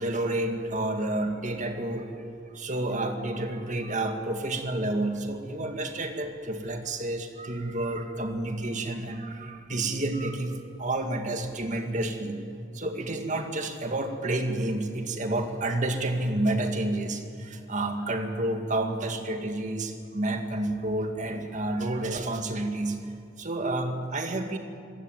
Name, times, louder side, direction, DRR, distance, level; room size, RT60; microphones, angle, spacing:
voice 1, 0.0-2.1 2.5-12.4 12.7-23.0 23.4-24.6, right 2 dB, 40° right, 5 dB, 2.1 m, -30 dB
26.5 x 16.0 x 9.1 m, 2.4 s
head